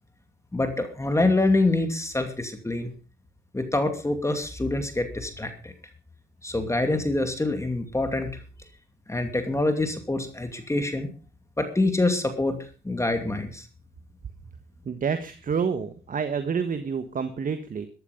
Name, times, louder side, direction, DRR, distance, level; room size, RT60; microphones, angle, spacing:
voice 1, 0.5-2.9 3.5-5.7 6.4-8.3 9.1-11.1 11.6-12.6 12.8-13.7, left 2 dB, 15° left, 6 dB, 2.6 m, -25 dB
voice 2, 14.8-17.9, right 6 dB, 45° right, 9 dB, 1.4 m, -28 dB
14.0 x 12.5 x 5.2 m, 0.36 s
cardioid pair, 90°, 20 cm